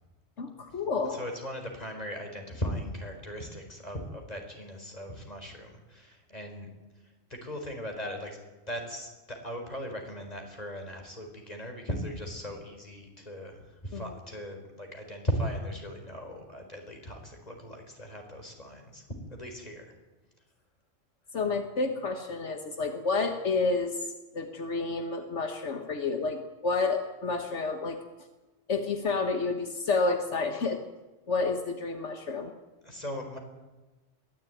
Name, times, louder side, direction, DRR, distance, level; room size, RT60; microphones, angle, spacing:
voice 1, 0.4-1.3 13.9-14.1 21.3-24.1 24.3-28.0 28.7-30.8 31.3-32.5, left 3 dB, 75° left, 6 dB, 1.7 m, -30 dB
voice 2, 1.1-6.7 7.4-8.4 8.7-19.9 32.8-33.4, equal, 35° left, 3 dB, 4.6 m, -38 dB
22.5 x 15.5 x 9.2 m, 1.2 s
omnidirectional pair, 1.2 m